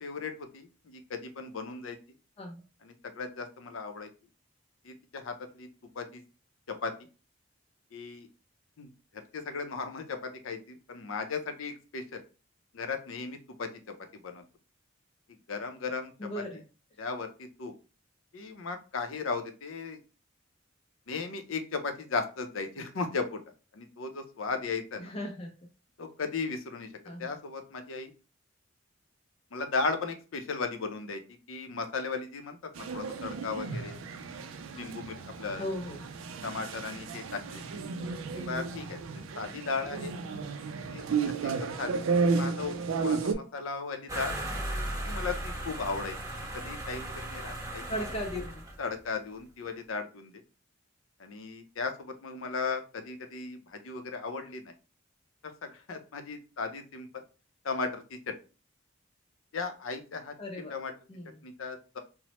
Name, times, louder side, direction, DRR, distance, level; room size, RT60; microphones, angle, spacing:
voice 1, 0.0-2.0 2.8-4.1 4.8-5.7 6.0-6.2 6.8-6.9 7.9-8.3 8.8-8.9 9.1-10.6 10.9-12.2 12.7-13.7 14.2-14.4 15.5-16.3 17.0-17.7 18.3-20.0 21.1-23.4 23.7-25.1 26.0-26.9 27.2-28.1 29.5-31.2 31.5-34.0 34.7-35.6 36.4-37.7 38.3-39.0 39.4-40.2 40.8-44.4 45.0-46.2 46.5-47.8 48.8-50.3 51.2-54.7 55.4-57.1 57.6-58.3 59.5-60.3 60.7-60.9 61.4-62.0, left 4 dB, 80° left, 7 dB, 0.5 m, -36 dB
voice 2, 16.2-16.6 25.0-25.5 27.0-27.4 35.6-36.0 47.9-48.6 60.4-60.7 61.1-61.4, equal, 30° left, 1 dB, 0.4 m, -37 dB
sound 1, 32.8-43.3, right 4 dB, 90° right, 0.4 m, -33 dB
sound 2, 44.1-48.9, right 1 dB, 15° right, 0.7 m, -37 dB
3.0 x 2.0 x 2.9 m, 0.33 s
head